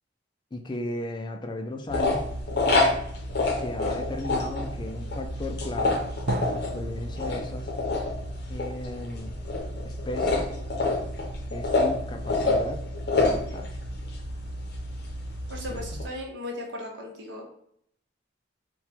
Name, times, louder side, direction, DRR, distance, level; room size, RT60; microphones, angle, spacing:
voice 1, 0.5-2.2 3.5-6.0 6.5-7.7 8.5-9.3 9.8-10.5 11.5-12.8 13.1-13.8 15.7-15.9, left 2 dB, 25° left, 6 dB, 0.4 m, -36 dB
sound 1, 1.9-16.1, left 2 dB, 60° left, 0.7 m, -28 dB
Drum, 6.3-10.0, right 3 dB, 50° right, 0.3 m, -38 dB
voice 2, 15.5-17.4, left 1 dB, 70° right, 1 dB, 1.1 m, -37 dB
4.2 x 2.3 x 4.2 m, 0.68 s
head